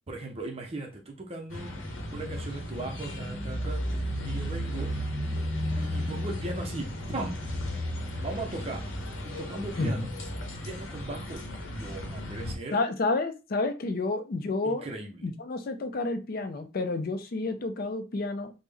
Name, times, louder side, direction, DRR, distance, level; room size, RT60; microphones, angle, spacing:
voice 1, 0.1-4.0 4.3-4.9 5.8-7.4 8.2-8.9 9.2-10.1 10.6-11.4 11.7-12.8 14.6-15.3, right 2 dB, 30° right, 2 dB, 0.5 m, -38 dB
sound 1, 1.5-12.5, equal, 75° left, 0.8 m, -34 dB
voice 2, 9.8-10.1 12.7-14.9 15.2-18.5, left 3 dB, 50° left, 9 dB, 0.4 m, -30 dB
3.5 x 2.0 x 3.3 m, 0.29 s
head